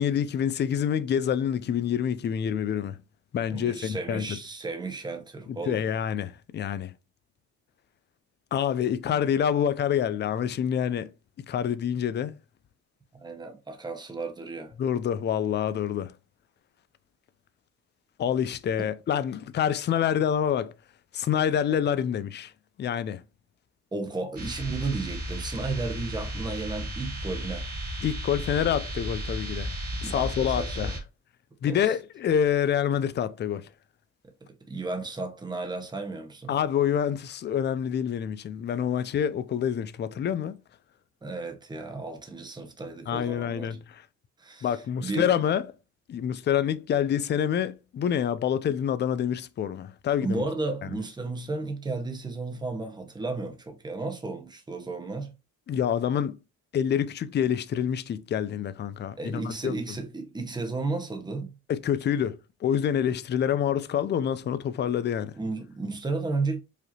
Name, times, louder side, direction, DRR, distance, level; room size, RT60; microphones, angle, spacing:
voice 1, 0.0-3.0 3.3-4.4 5.7-6.9 8.5-11.1 11.5-12.4 14.8-16.1 18.2-20.7 21.1-22.5 22.8-23.2 28.0-29.7 30.0-30.9 31.6-33.7 36.5-40.6 43.1-44.0 44.6-45.6 46.1-50.4 55.7-56.4 56.7-59.7 61.7-65.3, left 9 dB, 35° left, 0.4 m, -27 dB
voice 2, 3.5-5.8 13.1-14.7 23.9-27.7 30.0-31.0 31.6-31.9 34.7-36.5 41.2-43.7 44.4-45.3 50.2-55.3 59.2-61.5 65.4-66.6, right 3 dB, 15° right, 0.9 m, -33 dB
sound 1, 24.4-31.0, equal, 30° right, 1.7 m, -34 dB
5.0 x 2.7 x 2.8 m
cardioid pair, 100°, 31 cm